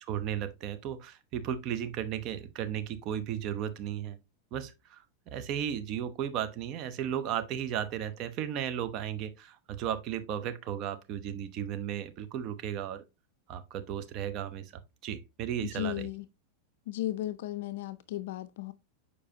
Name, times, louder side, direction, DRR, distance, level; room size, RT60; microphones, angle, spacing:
voice 1, 0.0-4.2 4.5-13.0 13.5-16.1, right 9 dB, 45° right, 0.8 m, -35 dB
voice 2, 15.6-16.3 16.9-18.7, left 14 dB, 70° left, 0.4 m, -35 dB
7.0 x 4.9 x 2.8 m
supercardioid pair, 130°, 0 cm